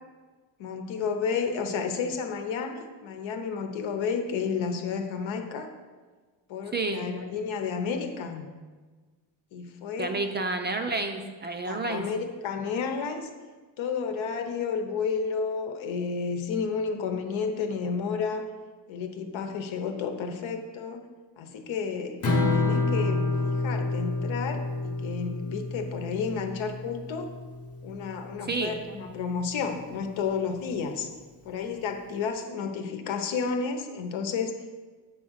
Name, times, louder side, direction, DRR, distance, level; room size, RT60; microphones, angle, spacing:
voice 1, 0.6-5.7 6.5-8.5 9.5-10.1 11.6-13.3 13.8-18.5 18.9-21.0 21.4-22.2 22.5-27.3 27.8-31.1 31.4-34.5, left 5 dB, 80° left, 5 dB, 1.0 m, -31 dB
voice 2, 6.7-7.0 10.0-12.0 28.4-28.8, right 3 dB, 25° right, 5 dB, 0.4 m, -30 dB
Strum, 22.2-28.5, left 2 dB, 30° left, 0.9 m, -29 dB
8.3 x 3.8 x 6.3 m, 1.4 s
cardioid pair, 155°, 46 cm